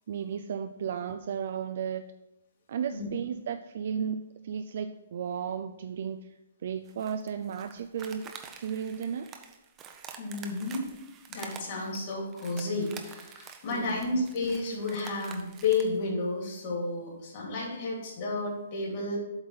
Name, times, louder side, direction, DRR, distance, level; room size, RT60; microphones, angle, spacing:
voice 1, 0.1-2.1 2.7-6.3 6.6-8.3 8.6-9.4 13.7-14.2, right 7 dB, 60° right, 8 dB, 0.4 m, -34 dB
sound 1, 6.9-16.0, right 7 dB, 20° right, 0.7 m, -48 dB
voice 2, 10.2-10.9 11.3-19.2, left 3 dB, 40° left, -3 dB, 2.7 m, -31 dB
7.9 x 3.7 x 5.6 m, 0.96 s
hypercardioid pair, 150°, 0 cm